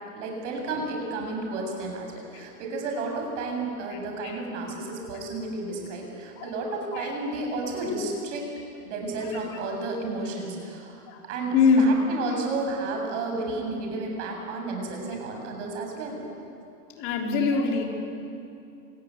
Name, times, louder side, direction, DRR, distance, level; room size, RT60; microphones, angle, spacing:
voice 1, 0.1-8.5 8.8-16.2, right 2 dB, 60° right, 1 dB, 7.6 m, -32 dB
voice 2, 11.5-12.0 17.0-17.8, left 4 dB, 40° left, 1 dB, 3.7 m, -23 dB
27.0 x 17.0 x 9.7 m, 2.6 s
supercardioid pair, 165°, 40 cm